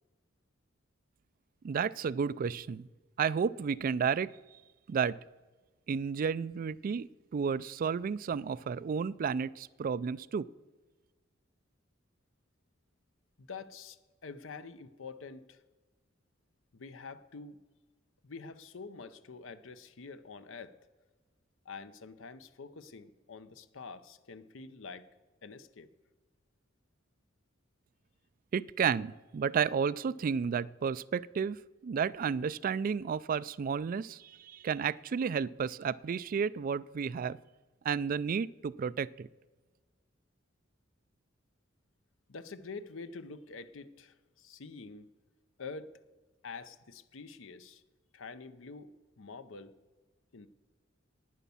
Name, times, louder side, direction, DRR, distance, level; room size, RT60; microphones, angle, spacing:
voice 1, 1.6-2.9 3.2-4.3 4.9-5.2 5.9-10.5 28.5-37.4 37.8-39.3, right 6 dB, 45° right, 19 dB, 0.3 m, -32 dB
voice 2, 13.4-15.6 16.7-17.6 18.2-20.7 21.6-25.1 25.4-25.9 42.3-45.1 45.6-45.9 46.4-47.8 48.1-49.7 50.3-50.5, left 4 dB, 80° left, 12 dB, 0.7 m, -46 dB
11.0 x 9.3 x 7.0 m, 1.3 s
head